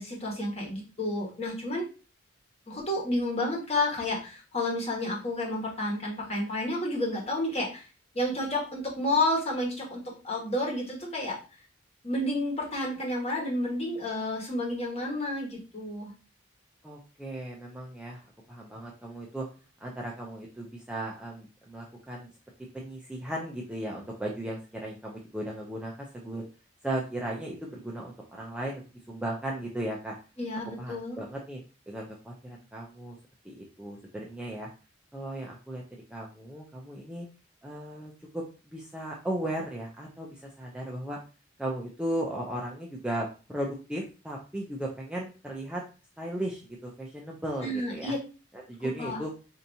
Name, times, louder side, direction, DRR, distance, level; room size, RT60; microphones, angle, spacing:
voice 1, 0.0-1.8 2.7-7.8 8.1-11.4 12.0-16.1 30.4-31.2 47.6-48.2 49.0-49.2, left 1 dB, 30° left, -2 dB, 1.3 m, -30 dB
voice 2, 16.8-19.5 19.8-22.3 22.7-26.4 26.8-28.8 29.1-30.2 30.8-31.6 31.9-33.2 33.4-34.7 35.1-35.8 36.1-37.3 37.6-38.4 38.7-41.2 41.6-45.8 46.2-48.1 48.5-49.3, right 1 dB, 5° right, -3 dB, 0.5 m, -36 dB
4.5 x 2.8 x 2.6 m, 0.34 s
head